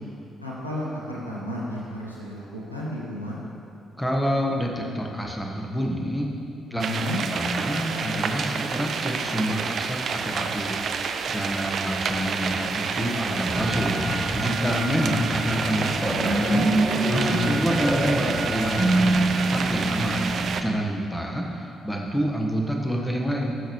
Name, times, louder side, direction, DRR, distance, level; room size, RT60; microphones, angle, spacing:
voice 1, 0.4-3.4 6.7-7.2 17.2-17.5, equal, 90° left, -6 dB, 1.0 m, -32 dB
voice 2, 4.0-6.3 6.7-7.0 7.3-14.0 14.3-16.7 17.1-20.3 20.6-23.6, equal, 10° left, 0 dB, 1.3 m, -28 dB
sound 1, 6.8-20.6, right 5 dB, 50° right, 0.4 m, -29 dB
sound 2, 13.5-20.8, right 1 dB, 20° right, 1.3 m, -26 dB
14.0 x 6.4 x 3.2 m, 2.6 s
figure-of-eight pair, 40°, 0 cm